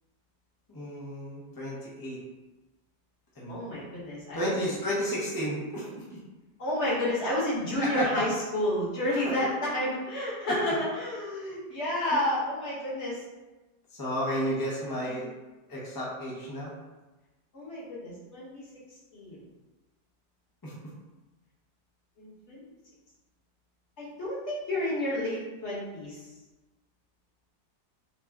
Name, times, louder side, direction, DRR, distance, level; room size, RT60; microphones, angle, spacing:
voice 1, 0.7-2.2 3.4-3.6 4.3-6.0 7.8-8.3 9.1-9.5 10.5-10.7 11.5-11.6 12.0-12.1 13.9-15.3 15.7-16.7 20.6-20.9, equal, 30° left, -6 dB, 0.4 m, -32 dB
voice 2, 3.5-4.7 6.6-13.2 14.8-15.3 17.5-18.7 19.1-19.4 22.2-22.6 24.0-26.3, left 1 dB, 45° left, -6 dB, 1.2 m, -31 dB
3.3 x 2.4 x 3.4 m, 1.1 s
omnidirectional pair, 1.8 m